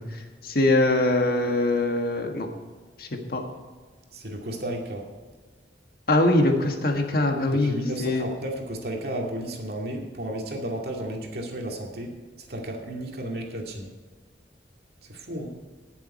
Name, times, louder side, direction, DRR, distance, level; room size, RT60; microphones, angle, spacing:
voice 1, 0.0-2.5 3.0-3.4 6.1-8.3, left 2 dB, 60° left, 3 dB, 1.6 m, -23 dB
voice 2, 4.1-5.1 7.5-13.9 15.0-15.6, right 1 dB, 60° right, 0 dB, 2.4 m, -33 dB
19.0 x 7.2 x 4.4 m, 1.4 s
head